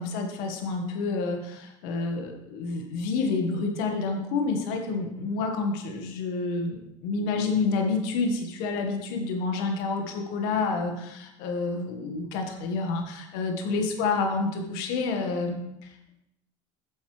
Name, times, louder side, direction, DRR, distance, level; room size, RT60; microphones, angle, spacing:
voice 1, 0.0-16.1, left 4 dB, 70° left, 4 dB, 1.6 m, -29 dB
10.5 x 7.4 x 3.3 m, 0.83 s
supercardioid pair, 90°, 16 cm